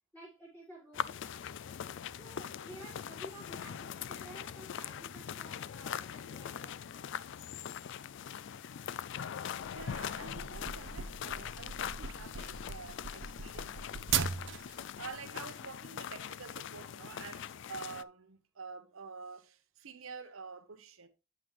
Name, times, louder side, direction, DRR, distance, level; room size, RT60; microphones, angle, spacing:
voice 1, 0.1-1.4 2.2-7.1, right 1 dB, 10° left, 5.3 m, -53 dB
sound 1, 0.9-18.0, left 8 dB, 60° left, 0.3 m, -42 dB
sound 2, 9.6-14.8, right 7 dB, 60° right, 0.6 m, -38 dB
voice 2, 9.7-21.1, right 5 dB, 80° right, 1.0 m, -48 dB
8.5 x 7.3 x 3.1 m
head